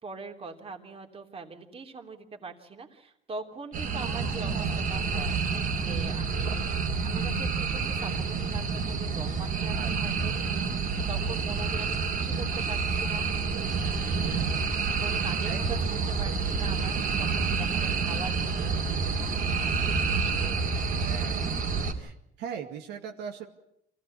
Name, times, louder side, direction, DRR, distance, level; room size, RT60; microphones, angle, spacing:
voice 1, 0.0-6.7 7.0-10.8 11.1-11.9 12.2-13.3 14.8-15.8 16.1-21.0, right 4 dB, 35° right, 3 dB, 3.1 m, -43 dB
sound 1, 3.7-21.9, right 5 dB, 55° right, 3.1 m, -28 dB
voice 2, 14.2-14.6 15.5-16.0 20.9-21.4 21.9-23.5, right 7 dB, 85° right, 2 dB, 2.2 m, -40 dB
25.5 x 16.0 x 8.6 m, 0.79 s
cardioid pair, 110°, 17 cm